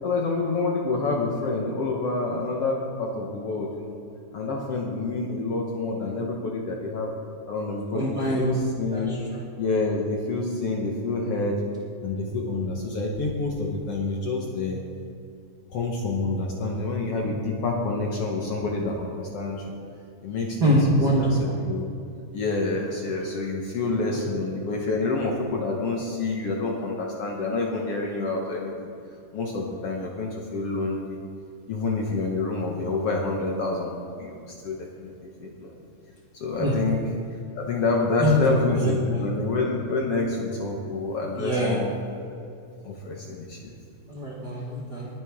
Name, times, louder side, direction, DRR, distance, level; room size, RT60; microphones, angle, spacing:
voice 1, 0.0-4.0 4.3-7.1 7.5-9.1 9.6-11.6 12.0-14.8 15.7-19.7 20.2-21.9 22.3-28.9 29.3-31.2 31.7-33.9 34.2-35.1 35.4-35.8 36.3-37.0 37.6-41.9 42.8-43.7, left 3 dB, 60° left, -1 dB, 1.7 m, -28 dB
voice 2, 7.9-8.5 8.9-9.4 20.6-21.6 24.1-24.3 36.6-36.8 38.2-38.3 38.7-39.2 41.3-41.8 44.1-45.1, right 1 dB, 45° right, -4 dB, 1.4 m, -24 dB
20.5 x 9.0 x 3.6 m, 2.6 s
omnidirectional pair, 3.8 m